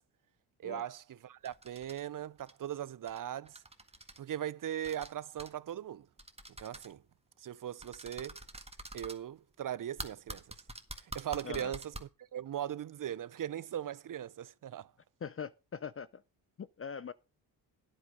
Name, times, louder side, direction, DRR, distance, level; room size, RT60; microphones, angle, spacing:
voice 1, 0.6-3.6 4.2-6.1 6.6-7.0 7.4-8.4 8.9-10.5 11.0-14.9, right 10 dB, 50° right, 0.6 m, -39 dB
sound 1, 1.5-2.0 2.4-2.5 3.1-3.2 3.5-4.2 4.8-5.1 5.4-5.5 6.2-6.9 7.8-9.2 10.0-12.0, right 2 dB, 15° right, 1.7 m, -45 dB
voice 2, 15.2-16.2 16.6-17.1, left 6 dB, 30° left, 0.5 m, -42 dB
9.5 x 8.6 x 5.2 m
cardioid pair, 65°, 43 cm